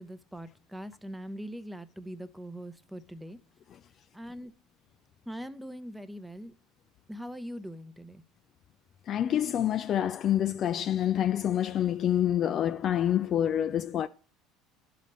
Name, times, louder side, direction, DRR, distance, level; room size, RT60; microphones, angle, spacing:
voice 1, 0.0-3.4 4.1-4.5 5.3-6.5 7.1-8.2, equal, 5° right, 0.7 m, -42 dB
voice 2, 9.1-14.1, left 10 dB, 45° left, 0.3 m, -27 dB
11.0 x 4.3 x 5.3 m
supercardioid pair, 100°, 0 cm